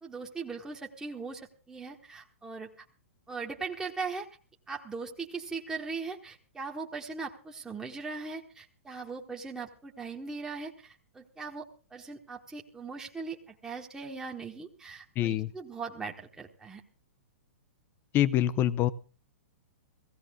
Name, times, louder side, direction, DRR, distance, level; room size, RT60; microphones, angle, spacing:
voice 1, 0.0-2.8 3.3-4.3 4.7-16.8, right 4 dB, 10° right, 0 dB, 1.4 m, -39 dB
voice 2, 15.2-15.5 18.1-18.9, left 12 dB, 30° left, 17 dB, 0.7 m, -25 dB
17.0 x 16.0 x 3.6 m, 0.37 s
figure-of-eight pair, 110°, 8 cm